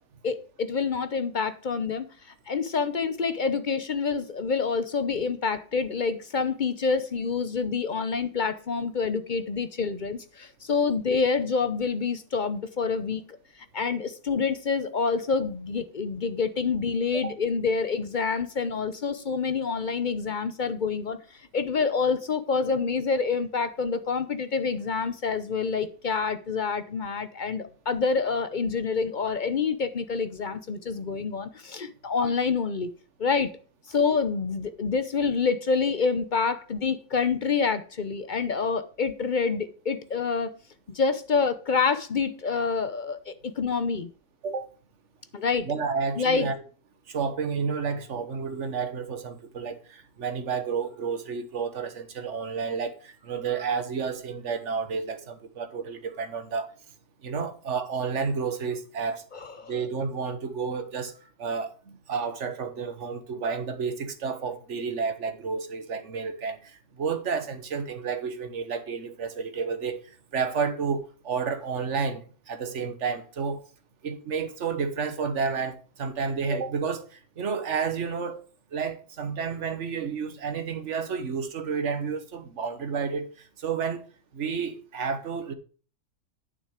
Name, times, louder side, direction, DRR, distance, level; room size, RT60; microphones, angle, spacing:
voice 1, 0.2-2.1 2.5-13.4 13.7-21.2 21.5-32.9 33.2-33.5 33.9-40.5 40.9-44.1 45.3-45.7 46.2-46.5 59.6-59.7, left 5 dB, 45° left, 0.6 m, -27 dB
voice 2, 45.6-46.6 47.1-56.7 57.2-59.2 59.7-61.1 61.4-66.7 67.0-70.0 70.3-73.6 74.0-77.1 77.4-78.4 78.7-83.3 83.6-84.0 84.3-85.5, right 5 dB, 50° right, 1.4 m, -30 dB
9.1 x 7.0 x 5.0 m
omnidirectional pair, 1.7 m